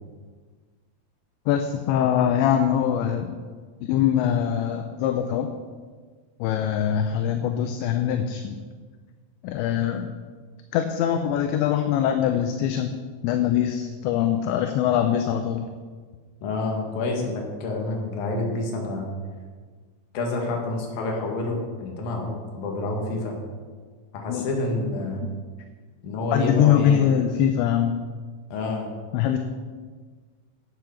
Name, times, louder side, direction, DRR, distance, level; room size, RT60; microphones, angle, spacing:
voice 1, 1.5-3.3 3.8-5.5 6.4-8.6 9.4-10.1 10.7-15.6 24.3-24.5 25.2-25.4 26.3-28.0 29.1-29.4, left 9 dB, 80° left, 7 dB, 2.8 m, -23 dB
voice 2, 16.4-19.1 20.1-23.4 24.1-25.2 26.0-27.1 28.5-28.9, left 2 dB, 55° left, 0 dB, 3.2 m, -28 dB
11.5 x 8.1 x 5.8 m, 1.5 s
omnidirectional pair, 5.4 m